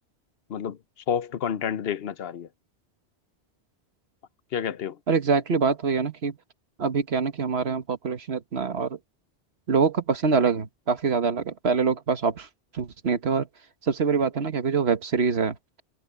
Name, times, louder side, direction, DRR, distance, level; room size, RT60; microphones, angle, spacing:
voice 1, 1.1-2.5 4.5-5.0, left 8 dB, 65° left, 1.0 m, -29 dB
voice 2, 5.1-6.4 6.8-9.0 9.7-12.5 12.7-13.5 13.8-15.6, right 5 dB, 70° right, 1.6 m, -24 dB
omnidirectional pair, 1.1 m